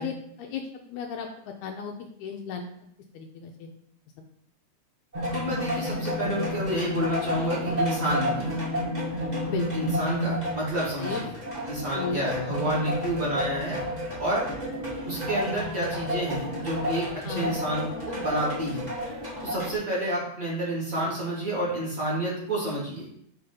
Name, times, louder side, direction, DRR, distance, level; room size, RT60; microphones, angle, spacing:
voice 1, 0.0-1.9 2.2-2.7 3.1-3.7 9.5-9.9 11.0-11.2 11.9-12.2 17.2-17.5, left 6 dB, 80° left, 2 dB, 2.0 m, -35 dB
sound 1, 5.1-19.8, equal, 20° right, 1.3 m, -31 dB
voice 2, 5.3-8.6 9.7-11.4 11.6-13.8 14.2-14.5 15.1-18.9 19.4-23.0, right 1 dB, 35° right, -5 dB, 1.7 m, -29 dB
6.1 x 3.5 x 5.1 m, 0.71 s
omnidirectional pair, 3.4 m